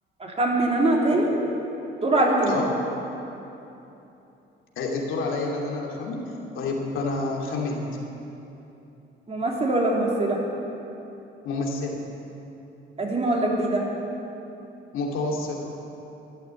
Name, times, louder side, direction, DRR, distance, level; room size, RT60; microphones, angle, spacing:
voice 1, 0.2-1.3 2.0-2.5 9.3-10.4 13.0-13.8, right 2 dB, 30° right, -2 dB, 3.3 m, -22 dB
voice 2, 4.8-6.2 6.5-7.8 11.4-12.0 14.9-15.6, left 3 dB, 85° left, -2 dB, 2.7 m, -28 dB
13.0 x 11.5 x 8.4 m, 2.9 s
cardioid pair, 90°, 20 cm